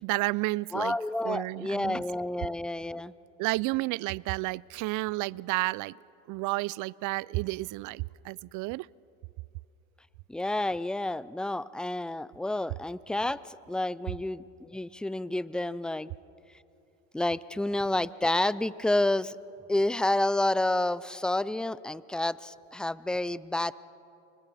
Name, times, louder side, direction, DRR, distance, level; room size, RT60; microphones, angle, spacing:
voice 1, 0.0-1.0 1.2-2.0 3.4-6.0 6.3-8.9, right 21 dB, 60° right, 25 dB, 0.5 m, -31 dB
voice 2, 0.7-3.1 10.3-13.4 13.7-16.1 17.1-19.4 19.7-23.7, left 1 dB, ahead, 18 dB, 0.4 m, -29 dB
29.5 x 24.5 x 4.2 m, 2.9 s
supercardioid pair, 80°, 37 cm